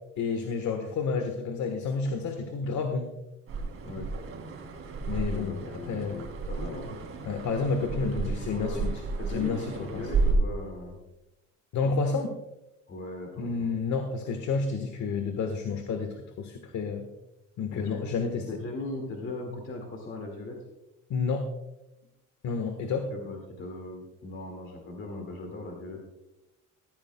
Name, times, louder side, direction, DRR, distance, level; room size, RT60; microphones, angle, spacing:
voice 1, 0.2-3.1 5.1-6.2 7.2-8.9 9.3-10.0 11.7-12.4 13.4-17.1 17.6-18.4 21.1-21.5 22.4-23.1, left 4 dB, 60° left, 6 dB, 1.4 m, -30 dB
sound 1, 3.5-10.3, right 4 dB, 45° right, 2.9 m, -33 dB
voice 2, 5.1-7.0 7.9-8.9 9.2-11.0 12.9-13.7 17.7-18.1 18.4-20.6 23.1-26.0, left 2 dB, 40° left, 1 dB, 2.1 m, -38 dB
16.5 x 14.0 x 2.2 m, 0.94 s
cardioid pair, 155°, 32 cm